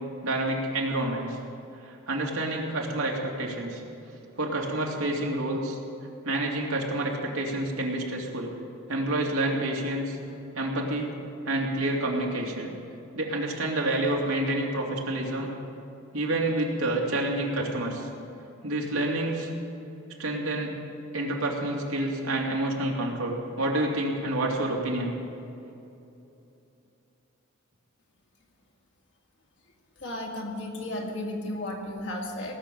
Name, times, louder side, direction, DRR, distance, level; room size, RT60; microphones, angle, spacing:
voice 1, 0.2-1.4 1.8-3.8 4.4-5.8 6.2-8.5 8.9-10.2 10.5-11.1 11.4-12.7 13.1-15.5 16.1-18.1 18.6-19.5 20.2-20.7 21.1-25.1, right 1 dB, 85° right, -2 dB, 2.6 m, -28 dB
voice 2, 30.0-32.6, left 1 dB, 55° left, -1 dB, 2.4 m, -34 dB
18.5 x 7.1 x 9.2 m, 2.8 s
head